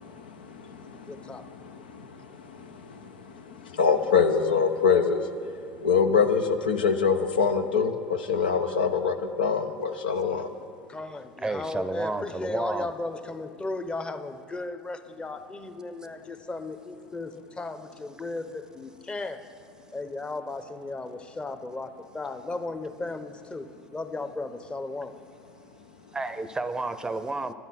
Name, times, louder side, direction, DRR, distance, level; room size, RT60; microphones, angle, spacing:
voice 1, 0.0-10.5, left 6 dB, 85° left, 7 dB, 0.7 m, -25 dB
voice 2, 1.1-1.4 10.9-19.4 19.9-23.7 23.9-25.1, left 2 dB, 20° left, 9 dB, 0.8 m, -35 dB
voice 3, 11.4-12.9 26.1-27.5, right 2 dB, 15° right, 12 dB, 0.6 m, -31 dB
11.0 x 10.5 x 5.8 m, 2.2 s
hypercardioid pair, 80°, 5 cm